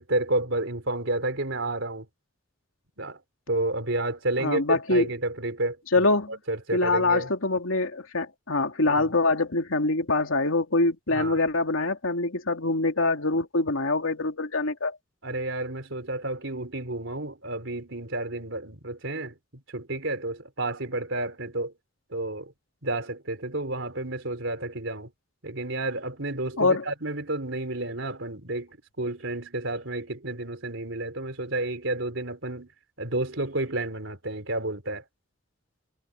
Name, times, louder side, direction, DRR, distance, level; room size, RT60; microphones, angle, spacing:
voice 1, 0.0-2.1 3.0-3.2 3.5-6.1 6.5-7.3 8.9-9.1 11.1-11.4 15.2-19.4 19.7-21.7 22.1-22.5 22.8-25.1 25.4-32.7 33.0-35.0, right 2 dB, 65° right, 3.8 m, -31 dB
voice 2, 4.4-5.1 5.9-6.4 6.7-15.0 26.6-26.9, left 2 dB, 80° left, 2.7 m, -24 dB
head